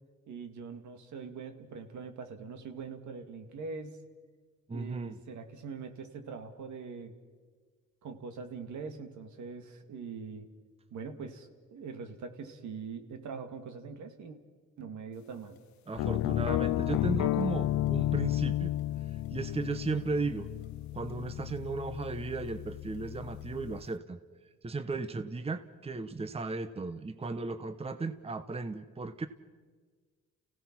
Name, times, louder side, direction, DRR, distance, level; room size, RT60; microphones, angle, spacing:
voice 1, 0.3-4.0 4.7-7.1 8.0-10.5 10.9-14.4 14.8-15.6, right 5 dB, 70° right, 6 dB, 2.2 m, -43 dB
voice 2, 4.7-5.2 15.9-18.7 19.1-20.5 20.9-24.2 24.6-29.3, right 3 dB, 20° right, 11 dB, 0.9 m, -35 dB
sound 1, 16.0-23.9, left 14 dB, 70° left, 0.5 m, -32 dB
29.5 x 16.5 x 6.0 m, 1.5 s
cardioid pair, 90°, 30 cm